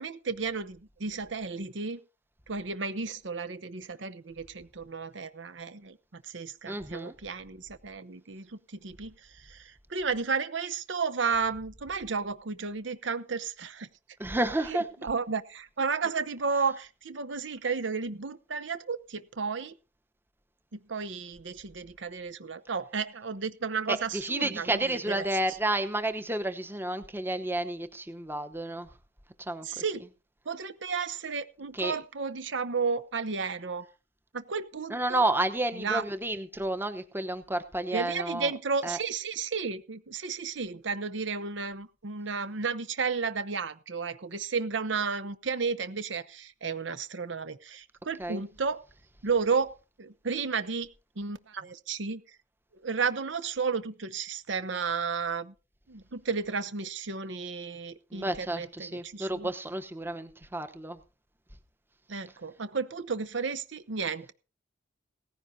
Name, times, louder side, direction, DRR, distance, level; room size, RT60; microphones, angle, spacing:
voice 1, 0.0-2.0 2.5-13.9 14.7-19.8 20.7-25.2 29.6-30.1 30.5-33.9 34.3-35.2 35.8-36.0 37.9-48.8 49.2-50.9 51.2-52.2 52.8-55.5 55.9-59.5 62.1-64.3, right 5 dB, 75° right, 12 dB, 0.8 m, -33 dB
voice 2, 6.7-7.1 14.2-14.8 23.9-28.9 29.4-29.8 31.7-32.0 34.9-38.5 38.8-39.0 48.2-48.4 58.1-61.0, right 1 dB, 10° right, 8 dB, 0.9 m, -31 dB
17.5 x 15.0 x 2.8 m, 0.33 s
head